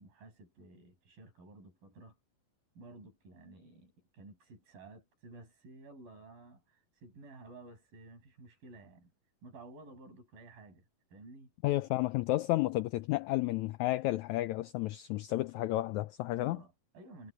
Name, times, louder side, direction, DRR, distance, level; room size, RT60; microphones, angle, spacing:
voice 1, 0.0-2.2 2.8-9.1 9.4-11.5 16.4-17.3, right 2 dB, 85° right, 9.0 m, -53 dB
voice 2, 11.6-16.6, left 17 dB, 85° left, 1.6 m, -32 dB
omnidirectional pair, 3.9 m